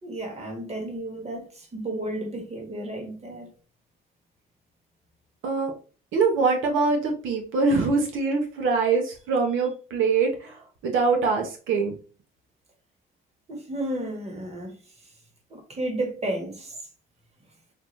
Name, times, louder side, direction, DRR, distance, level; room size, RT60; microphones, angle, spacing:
voice 1, 0.0-3.5 13.5-14.7 15.5-16.7, right 1 dB, 35° right, 1.6 m, -32 dB
voice 2, 6.1-10.5 10.8-11.9, right 4 dB, 85° right, 1.1 m, -23 dB
5.7 x 2.3 x 3.2 m
cardioid pair, 90°, 20 cm